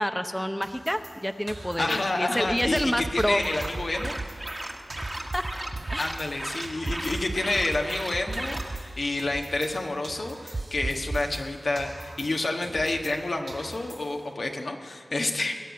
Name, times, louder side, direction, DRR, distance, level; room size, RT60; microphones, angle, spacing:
voice 1, 0.0-3.4 5.3-5.4 5.9-6.1, equal, 10° left, 8 dB, 0.7 m, -28 dB
sound 1, 0.6-2.9 3.2-6.3 6.6-9.8 10.0-13.2 13.5-14.3, right 2 dB, 80° right, 2.0 m, -45 dB
voice 2, 1.8-4.2 6.0-15.5, left 2 dB, 70° left, 3 dB, 1.4 m, -29 dB
sound 2, 2.6-3.3 3.6-4.3 5.0-6.0 6.9-7.8 8.1-8.8 10.5-11.3, right 2 dB, 45° right, 0.7 m, -33 dB
sound 3, 3.3-8.7, right 1 dB, 30° right, 1.5 m, -36 dB
19.5 x 7.1 x 9.5 m, 2.2 s
cardioid pair, 40°, 0 cm